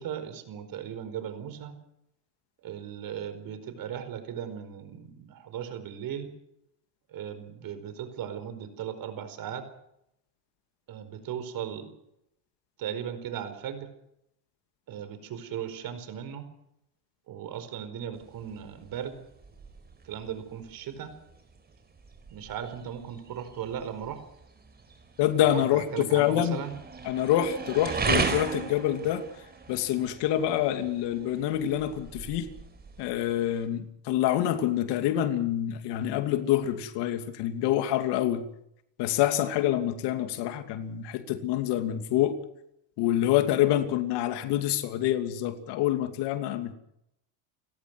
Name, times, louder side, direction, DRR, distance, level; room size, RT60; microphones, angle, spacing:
voice 1, 0.0-1.8 2.6-6.3 7.1-9.7 10.9-11.9 12.8-13.9 14.9-16.5 17.3-19.2 20.0-21.1 22.3-24.2 25.4-26.8, right 9 dB, 45° right, 4.8 m, -37 dB
sound 1, 18.1-33.7, right 4 dB, 20° right, 4.7 m, -37 dB
voice 2, 25.2-26.6 27.0-29.3 29.7-32.5 33.0-38.5 39.0-42.4 43.0-46.7, left 12 dB, 60° left, 2.7 m, -26 dB
29.5 x 17.0 x 6.2 m
supercardioid pair, 120°, 46 cm